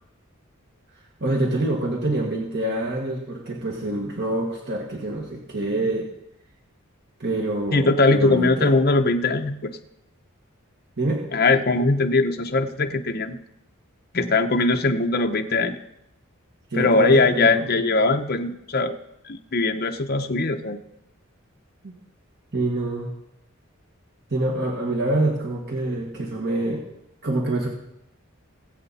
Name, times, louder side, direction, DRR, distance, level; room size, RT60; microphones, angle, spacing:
voice 1, 1.2-6.1 7.2-8.8 11.0-11.2 16.7-17.7 21.8-21.9 22.5-23.1 24.3-26.8 27.2-27.7, right 2 dB, 50° right, -1 dB, 1.7 m, -26 dB
voice 2, 7.7-9.7 11.3-13.4 14.1-15.7 16.7-18.9 19.2-20.8, left 3 dB, 45° left, 4 dB, 0.9 m, -20 dB
21.0 x 8.0 x 4.2 m, 0.82 s
head